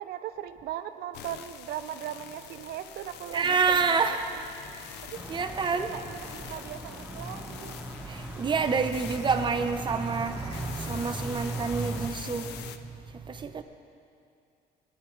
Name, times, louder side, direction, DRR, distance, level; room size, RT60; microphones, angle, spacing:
voice 1, 0.0-4.4 4.8-5.2 5.7-7.8, right 11 dB, 70° right, 9 dB, 0.5 m, -39 dB
sound 1, 1.1-12.8, left 9 dB, 80° left, 0.5 m, -45 dB
voice 2, 3.3-4.2 5.3-5.9 8.4-12.4 13.5-13.6, right 5 dB, 30° right, 7 dB, 0.7 m, -27 dB
sound 2, 5.1-12.1, right 1 dB, 5° right, 1.0 m, -41 dB
18.0 x 9.6 x 3.2 m, 2.5 s
cardioid pair, 110°, 17 cm